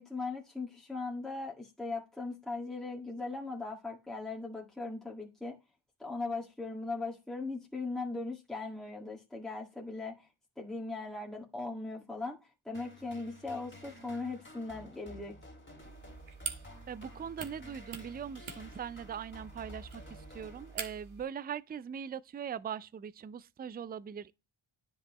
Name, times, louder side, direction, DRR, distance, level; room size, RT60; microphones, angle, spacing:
voice 1, 0.0-5.6 6.0-10.3 10.6-15.3, left 3 dB, ahead, 1.7 m, -39 dB
sound 1, 12.7-21.2, left 1 dB, 25° left, 2.7 m, -52 dB
sound 2, 15.8-21.2, right 6 dB, 75° right, 1.6 m, -45 dB
voice 2, 16.9-24.3, right 8 dB, 20° right, 0.3 m, -41 dB
10.0 x 5.4 x 3.0 m
cardioid pair, 70°, 48 cm